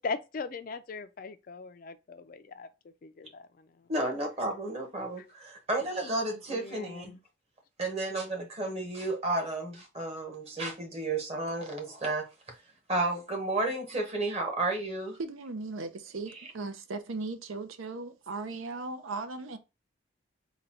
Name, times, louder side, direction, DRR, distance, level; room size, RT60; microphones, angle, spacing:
voice 1, 0.0-2.7 3.0-3.9 5.2-5.3 6.5-7.2, left 4 dB, 45° left, 0.3 m, -39 dB
voice 2, 3.9-7.1 7.8-12.3 12.9-15.2, right 2 dB, 30° right, 1.0 m, -32 dB
voice 3, 15.2-19.6, right 3 dB, 90° right, 0.6 m, -37 dB
3.9 x 2.3 x 4.2 m
head